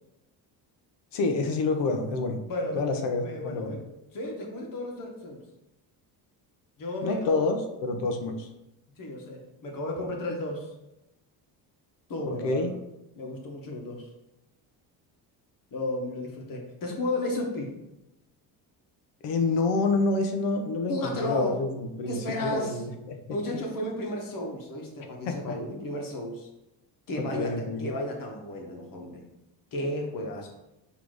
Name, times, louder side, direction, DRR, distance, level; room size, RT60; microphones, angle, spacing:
voice 1, 1.1-2.4 2.7-3.7 7.0-8.5 12.3-12.7 19.2-23.2 23.5-23.6 25.2-25.6 27.2-27.8, left 3 dB, 80° left, 5 dB, 1.1 m, -28 dB
voice 2, 2.5-3.8 4.1-5.4 6.8-7.5 9.0-10.7 12.1-12.6 13.1-14.1 15.7-17.7 20.9-21.6 22.1-22.8 23.3-26.5 27.1-29.2 29.7-30.5, left 1 dB, 50° left, 0 dB, 1.7 m, -33 dB
6.2 x 3.4 x 5.0 m, 0.91 s
cardioid pair, 130°, 42 cm